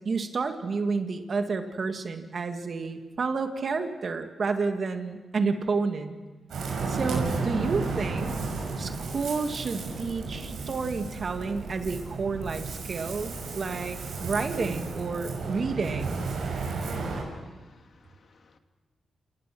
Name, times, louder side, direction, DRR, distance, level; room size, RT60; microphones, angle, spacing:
voice 1, 0.1-6.1 6.9-8.3 8.8-16.2, right 4 dB, 55° right, 6 dB, 1.9 m, -30 dB
Ocean, 6.5-17.2, right 4 dB, 85° right, 5.8 m, -33 dB
voice 2, 17.0-18.6, left 4 dB, 60° left, 6 dB, 2.1 m, -51 dB
28.5 x 18.5 x 6.2 m, 1.2 s
cardioid pair, 75°, 0 cm